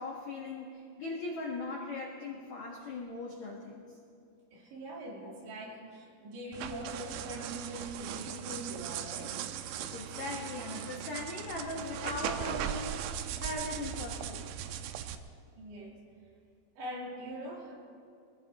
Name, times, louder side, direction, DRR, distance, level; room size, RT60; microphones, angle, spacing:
voice 1, 0.0-3.8 9.9-14.5, left 2 dB, 80° left, -2 dB, 1.6 m, -39 dB
voice 2, 4.5-9.4 15.6-16.0 16.7-17.7, right 1 dB, 65° right, -3 dB, 4.9 m, -42 dB
sound 1, 6.5-15.2, right 10 dB, 90° right, 2.6 m, -39 dB
23.0 x 16.0 x 3.6 m, 2.4 s
omnidirectional pair, 5.9 m